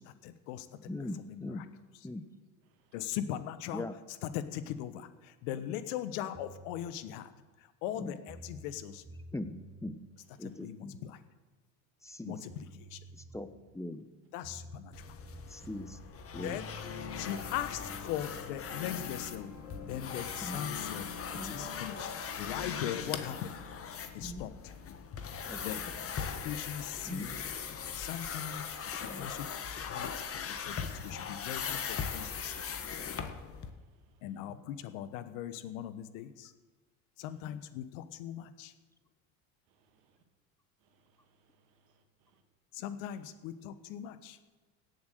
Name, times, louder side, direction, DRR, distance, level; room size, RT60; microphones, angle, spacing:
voice 1, 0.2-0.8 1.2-1.6 2.9-3.8 4.2-7.3 7.6-9.1 10.4-11.2 12.2-13.0 14.3-15.2 16.4-16.7 17.2-19.5 19.8-21.1 21.3-23.6 24.1-24.7 25.6-25.8 26.4-27.3 27.9-29.5 29.8-32.6 34.2-36.5 37.2-38.7 42.7-44.4, left 11 dB, 70° left, 12 dB, 1.2 m, -40 dB
voice 2, 0.9-1.6 2.0-2.3 3.7-3.9 8.0-8.1 9.3-10.0 10.4-11.0 12.0-12.4 13.1-14.1 15.5-16.0 16.3-16.6 20.4-20.8 21.3-21.7 24.2-24.5 25.4-25.6 27.0-27.5 29.1-29.3, left 1 dB, 5° left, 11 dB, 1.0 m, -41 dB
sound 1, 6.3-6.9 7.9-8.0 8.3-10.0 12.1-12.2 12.5-13.7 14.4-16.1, right 2 dB, 20° right, 1.9 m, -51 dB
sound 2, 14.9-33.7, left 7 dB, 35° left, 1.5 m, -40 dB
sound 3, 16.3-25.0, left 5 dB, 90° left, 2.8 m, -46 dB
voice 3, 33.4-34.3 39.7-40.2 40.8-42.4, right 4 dB, 70° right, 5 dB, 2.3 m, -72 dB
17.0 x 8.0 x 6.6 m, 1.3 s
hypercardioid pair, 85°, 40 cm